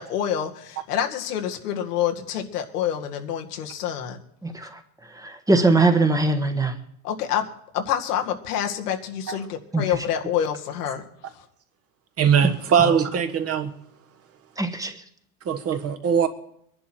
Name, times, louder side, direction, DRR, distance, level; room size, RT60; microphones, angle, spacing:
voice 1, 0.0-4.2 7.0-7.5 7.7-11.1 11.3-11.5, left 9 dB, 85° left, 2.0 m, -27 dB
voice 2, 5.2-6.7 9.7-9.8 12.8-12.9 14.6-14.9, right 2 dB, 10° right, 1.3 m, -21 dB
voice 3, 12.2-13.7 15.4-16.3, right 7 dB, 30° right, 1.5 m, -21 dB
22.0 x 11.0 x 4.5 m
supercardioid pair, 125°, 45 cm